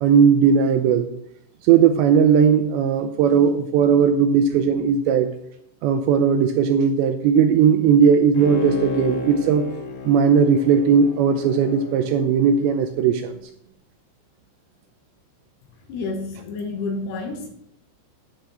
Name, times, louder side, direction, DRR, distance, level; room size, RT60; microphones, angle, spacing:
voice 1, 0.0-1.1 1.6-5.3 5.8-9.6 10.0-13.3, right 7 dB, 80° right, 7 dB, 2.6 m, -17 dB
Bowed string instrument, 8.3-13.0 13.4-13.5, left 3 dB, 90° left, 4.0 m, -32 dB
voice 2, 15.9-17.5, left 3 dB, 70° left, 3 dB, 2.9 m, -29 dB
9.9 x 6.7 x 6.3 m, 0.74 s
omnidirectional pair, 5.6 m